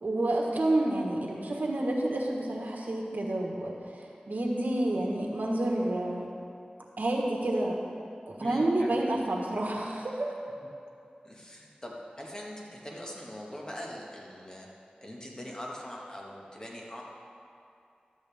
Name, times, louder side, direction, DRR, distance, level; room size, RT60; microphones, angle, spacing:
voice 1, 0.0-6.3 7.0-7.8 8.3-10.3, right 1 dB, 70° right, -1 dB, 1.4 m, -29 dB
voice 2, 8.4-8.9 11.2-14.7 15.0-17.0, equal, 25° left, -3 dB, 1.6 m, -42 dB
12.0 x 8.1 x 3.5 m, 2.5 s
wide cardioid pair, 50°, 3 cm